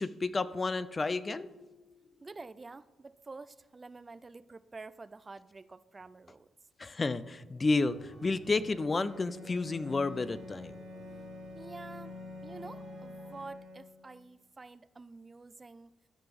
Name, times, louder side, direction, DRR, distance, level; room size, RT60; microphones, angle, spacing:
voice 1, 0.0-1.5 6.8-10.8, left 3 dB, 35° left, 15 dB, 0.5 m, -31 dB
Marimba xylophone, 1.0-2.8, left 1 dB, 85° left, 1.5 m, -57 dB
voice 2, 2.2-6.5 11.5-15.9, right 3 dB, 35° right, 16 dB, 0.3 m, -48 dB
sound 1, 7.8-13.5, left 2 dB, 60° left, 1.6 m, -55 dB
Bowed string instrument, 8.4-14.2, left 2 dB, 80° right, 2.6 m, -47 dB
13.0 x 5.9 x 3.5 m, 1.2 s
hypercardioid pair, 40°, 0 cm